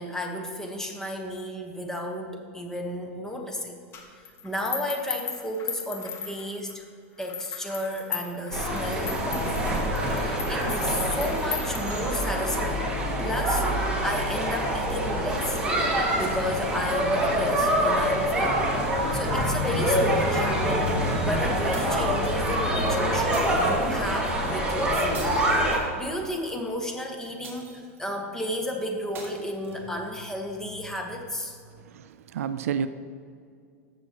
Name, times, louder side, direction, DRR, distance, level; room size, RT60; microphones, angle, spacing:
voice 1, 0.0-3.8 4.4-6.9 7.2-12.9 13.2-15.6 16.1-18.7 19.0-25.3 25.9-31.6, left 1 dB, 5° left, 3 dB, 1.1 m, -33 dB
sound 1, 3.9-6.7 7.2-12.4, left 6 dB, 35° left, 1.1 m, -37 dB
sound 2, 8.5-25.8, equal, 10° right, 1.7 m, -25 dB
sound 3, 21.7-22.6 23.3-23.9 25.1-26.4 27.4-28.1 29.1-30.1, right 4 dB, 30° right, 2.4 m, -44 dB
voice 2, 31.8-32.9, right 8 dB, 80° right, 12 dB, 0.4 m, -30 dB
14.0 x 6.3 x 2.9 m, 2.3 s
hypercardioid pair, 125°, 8 cm